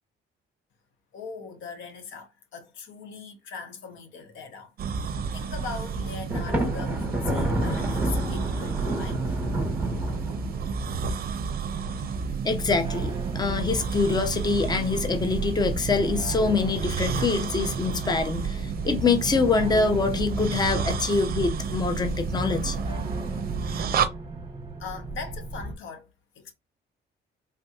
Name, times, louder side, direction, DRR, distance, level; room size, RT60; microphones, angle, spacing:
voice 1, 1.1-9.4 24.8-26.1 26.4-26.5, left 5 dB, 80° left, 0.8 m, -40 dB
sound 1, 4.8-24.1, right 5 dB, 50° right, 0.5 m, -31 dB
Thunder, 6.3-10.9, right 1 dB, 10° right, 1.3 m, -29 dB
voice 2, 12.4-22.8, left 4 dB, 20° left, 0.6 m, -25 dB
sound 2, 12.8-25.7, right 3 dB, 25° right, 0.8 m, -37 dB
3.4 x 2.7 x 2.3 m
cardioid pair, 90°, 20 cm